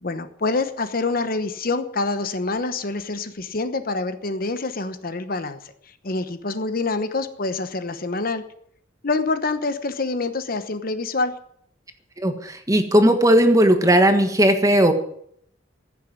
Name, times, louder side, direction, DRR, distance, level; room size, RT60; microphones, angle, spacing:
voice 1, 0.0-5.7 6.0-8.4 9.0-11.3, left 3 dB, 50° left, 10 dB, 1.0 m, -26 dB
voice 2, 12.2-14.9, equal, 15° right, 7 dB, 1.4 m, -17 dB
15.5 x 7.1 x 9.5 m, 0.68 s
head